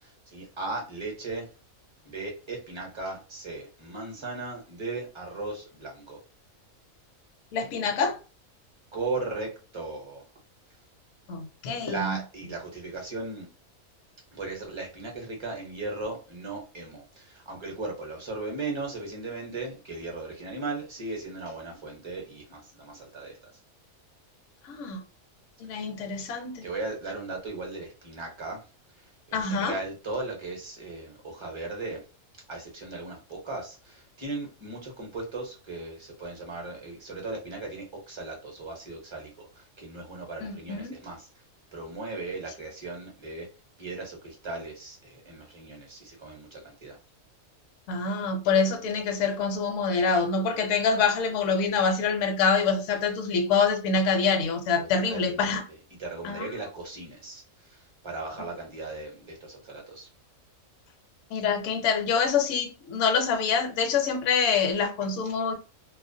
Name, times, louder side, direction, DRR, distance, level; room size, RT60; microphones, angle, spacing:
voice 1, 0.0-1.5 2.0-6.2 8.9-10.2 11.8-13.5 14.3-23.4 25.7-25.9 26.6-28.6 29.0-32.0 32.5-41.3 41.7-43.5 43.8-47.0 54.8-55.6 55.9-60.1, right 3 dB, 30° right, 0.6 m, -37 dB
voice 2, 7.5-8.2 11.3-12.2 24.6-25.0 25.6-26.7 29.3-29.8 40.4-40.9 47.9-55.6 56.2-56.5 61.3-65.6, left 5 dB, 70° left, 0.9 m, -26 dB
2.4 x 2.1 x 2.6 m
omnidirectional pair, 1.4 m